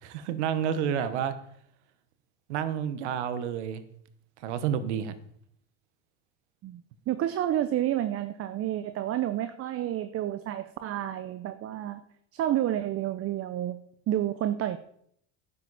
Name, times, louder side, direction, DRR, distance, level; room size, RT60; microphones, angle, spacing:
voice 1, 0.0-1.3 2.5-3.8 4.4-5.1, right 8 dB, 85° right, 12 dB, 1.3 m, -29 dB
voice 2, 6.6-12.0 12.3-14.8, right 12 dB, 40° right, 11 dB, 0.8 m, -30 dB
12.5 x 9.6 x 4.2 m, 0.68 s
supercardioid pair, 95°, 34 cm